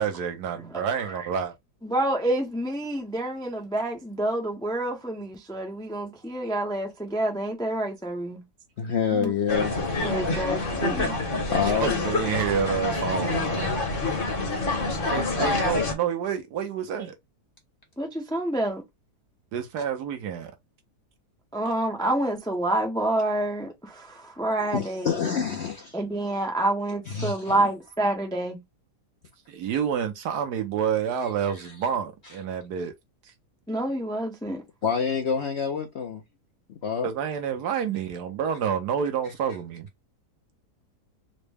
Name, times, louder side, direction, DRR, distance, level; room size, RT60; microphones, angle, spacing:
voice 1, 0.0-1.5 11.7-13.7 15.1-17.1 19.5-20.5 29.5-32.9 37.0-39.9, right 7 dB, 75° right, 1.3 m, -28 dB
voice 2, 0.7-1.3 1.8-8.4 9.1-9.3 10.0-11.1 15.4-15.5 18.0-18.8 21.5-25.3 25.9-28.6 33.7-34.6, right 1 dB, 5° left, 0.4 m, -28 dB
voice 3, 8.8-9.7 11.5-12.0 24.6-26.0 27.1-27.7 34.8-36.2 36.7-37.1, left 6 dB, 60° left, 0.7 m, -27 dB
sound 1, 9.5-15.9, left 3 dB, 40° left, 1.0 m, -27 dB
3.9 x 2.1 x 3.3 m
omnidirectional pair, 1.7 m